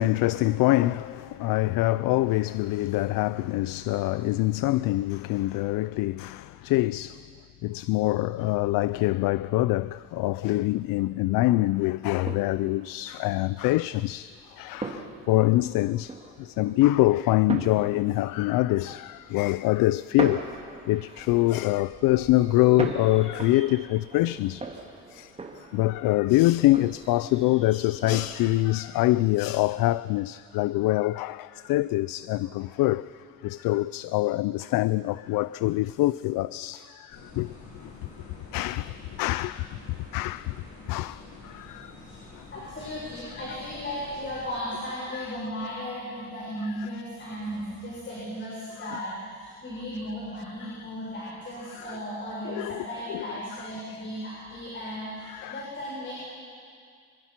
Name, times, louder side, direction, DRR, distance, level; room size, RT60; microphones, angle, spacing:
voice 1, 0.0-7.3 7.6-20.5 20.9-24.7 25.1-25.3 25.7-33.1 33.4-37.5 38.5-39.7 40.1-40.5 40.9-41.9 45.1-45.3 46.8-46.9 48.9-49.0 50.6-50.7 51.7-51.8 52.4-53.3 53.6-53.7 55.3-55.6, left 17 dB, 80° left, 0.5 m, -25 dB
sound 1, 11.2-28.6, right 3 dB, 20° right, 2.4 m, -40 dB
sound 2, 37.1-44.5, left 3 dB, 60° left, 7.4 m, -47 dB
voice 2, 42.5-49.1 49.4-56.1, equal, 35° left, 7.3 m, -36 dB
26.0 x 22.0 x 6.0 m
cardioid pair, 115°, 34 cm